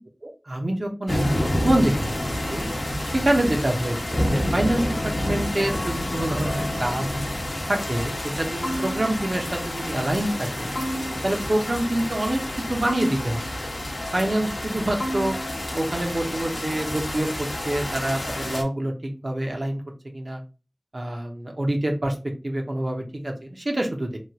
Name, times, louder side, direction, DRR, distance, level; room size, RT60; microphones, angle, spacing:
voice 1, 0.2-2.2 2.5-2.7 3.0-7.1 7.7-10.7 11.2-12.4 12.7-13.4 14.1-15.3 15.7-20.4 20.9-22.2 22.4-24.2, right 1 dB, 60° right, 2 dB, 0.8 m, -26 dB
sound 1, 1.1-18.6, left 1 dB, 70° left, 0.8 m, -29 dB
sound 2, 8.6-9.4 10.8-11.6 12.9-13.7 15.0-15.8, equal, 30° left, 0.8 m, -32 dB
3.1 x 2.4 x 2.9 m, 0.31 s
wide cardioid pair, 55°, 0 cm